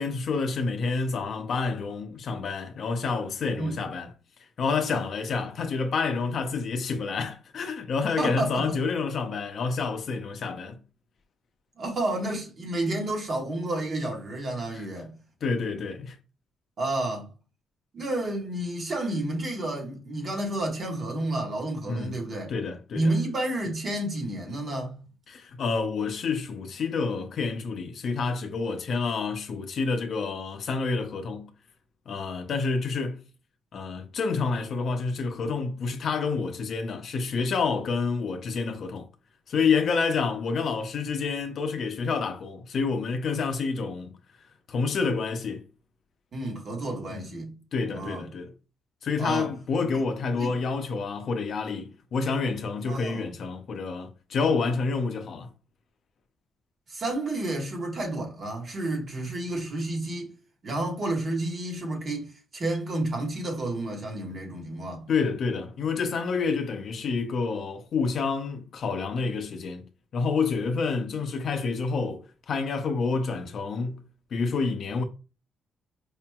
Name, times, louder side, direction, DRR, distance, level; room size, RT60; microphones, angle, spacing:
voice 1, 0.0-4.1 4.6-10.8 14.7-14.9 15.4-16.2 21.9-22.2 22.5-23.0 25.3-31.5 32.1-33.2 33.7-39.1 39.5-44.1 44.7-45.6 47.1-47.3 47.7-48.5 49.0-55.5 65.1-69.8 70.1-74.0 74.3-75.0, left 4 dB, 60° left, 0.6 m, -28 dB
voice 2, 8.2-8.7 11.8-15.1 16.8-17.3 17.9-22.5 22.9-25.0 46.3-47.5 47.9-48.2 49.2-49.5 49.9-50.0 50.4-50.6 52.9-53.3 56.9-60.3 60.6-62.3 62.5-65.1, right 1 dB, 45° right, 1.5 m, -30 dB
4.9 x 2.8 x 2.3 m
cardioid pair, 90°, 0 cm